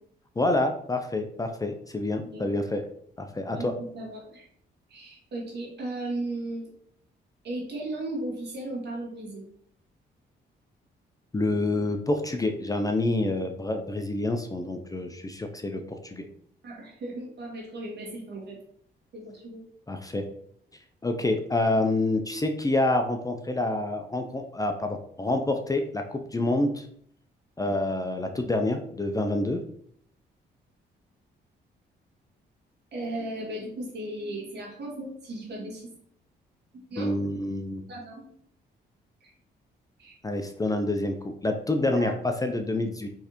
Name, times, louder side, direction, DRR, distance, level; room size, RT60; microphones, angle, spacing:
voice 1, 0.4-2.9 3.2-3.7 11.3-16.2 19.9-20.3 21.0-26.9 27.6-29.6 37.0-37.8 40.2-43.1, left 2 dB, 20° left, 5 dB, 0.5 m, -27 dB
voice 2, 3.5-4.5 4.9-6.7 7.4-9.5 16.6-18.6 19.1-19.6 32.9-35.9 36.9-37.1 37.9-38.3 39.2-39.3 40.0-40.2 41.9-42.2, right 1 dB, 60° right, -1 dB, 1.8 m, -36 dB
4.5 x 3.3 x 3.0 m, 0.64 s
cardioid pair, 70°, 19 cm